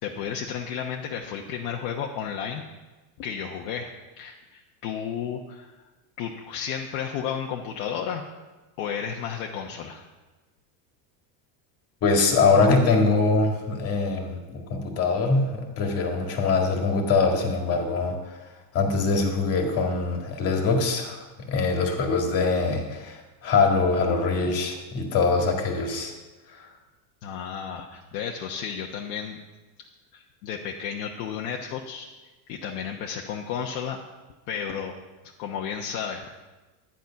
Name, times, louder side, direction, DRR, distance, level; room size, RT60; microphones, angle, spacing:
voice 1, 0.0-2.6 3.2-5.7 6.2-8.3 8.8-10.0 27.2-29.4 30.1-32.1 32.5-34.0 34.5-34.9 35.4-36.3, left 7 dB, 50° left, 1 dB, 1.1 m, -32 dB
voice 2, 12.0-18.4 18.7-21.2 21.5-26.1 26.6-26.7, left 4 dB, 30° left, 3 dB, 2.0 m, -23 dB
12.0 x 10.0 x 5.8 m, 1.2 s
cardioid pair, 170°, 47 cm